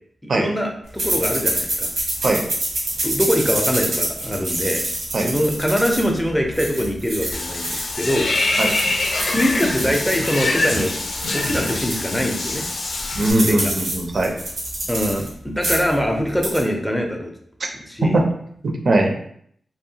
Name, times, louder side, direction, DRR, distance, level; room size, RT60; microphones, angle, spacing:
voice 1, 0.2-1.9 3.0-4.8 5.2-8.6 9.3-10.9 11.2-12.7 13.5-13.7 14.9-17.3 17.9-18.2, equal, 5° left, 1 dB, 0.4 m, -23 dB
sound 1, 1.0-8.1 8.5-12.1 12.5-12.6 12.8-15.3 15.5-16.0 16.3-16.6, right 1 dB, 90° right, 1.0 m, -27 dB
Water / Bathtub (filling or washing), 7.3-13.3, left 2 dB, 75° left, 0.4 m, -24 dB
voice 2, 13.2-14.3 17.6-17.7 18.0-18.3 18.6-19.1, right 2 dB, 55° right, 2 dB, 0.4 m, -20 dB
2.7 x 2.1 x 2.7 m, 0.65 s
wide cardioid pair, 125°, 0 cm